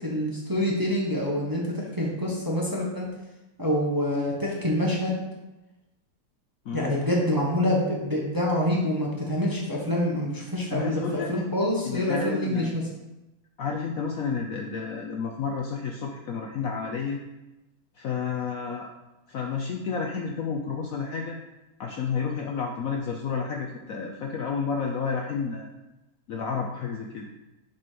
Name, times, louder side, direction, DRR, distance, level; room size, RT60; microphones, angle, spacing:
voice 1, 0.0-3.1 3.6-5.2 6.7-12.8, left 1 dB, 15° right, -3 dB, 0.9 m, -26 dB
voice 2, 6.7-7.0 10.7-11.3 11.8-12.8 13.6-17.2 18.0-18.9 19.3-21.4 21.8-25.7 26.3-27.3, left 5 dB, 85° left, 1 dB, 0.7 m, -31 dB
7.1 x 4.2 x 5.0 m, 1.0 s
omnidirectional pair, 2.2 m